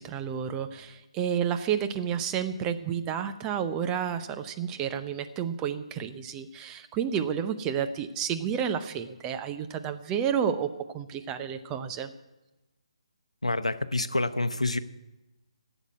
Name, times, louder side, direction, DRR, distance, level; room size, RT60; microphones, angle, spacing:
voice 1, 0.0-12.1, right 8 dB, 15° right, 7 dB, 0.7 m, -30 dB
voice 2, 13.4-14.8, left 2 dB, 80° left, 11 dB, 0.8 m, -27 dB
12.5 x 8.1 x 9.8 m, 1.0 s
figure-of-eight pair, 140°, 3 cm